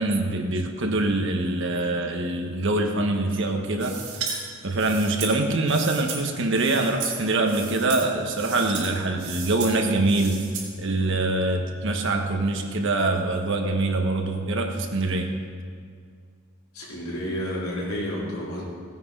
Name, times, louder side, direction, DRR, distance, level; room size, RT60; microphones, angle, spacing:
voice 1, 0.0-10.5 10.8-15.3, right 2 dB, 60° right, 3 dB, 1.3 m, -24 dB
sound 1, 3.8-4.4 4.8-6.2 6.5-7.2 7.5-8.0 8.3-8.9 9.2-9.7 10.1-10.7, right 6 dB, 85° right, 4.1 m, -34 dB
voice 2, 16.7-18.6, equal, 90° left, -6 dB, 4.1 m, -30 dB
17.5 x 9.5 x 4.8 m, 2.1 s
head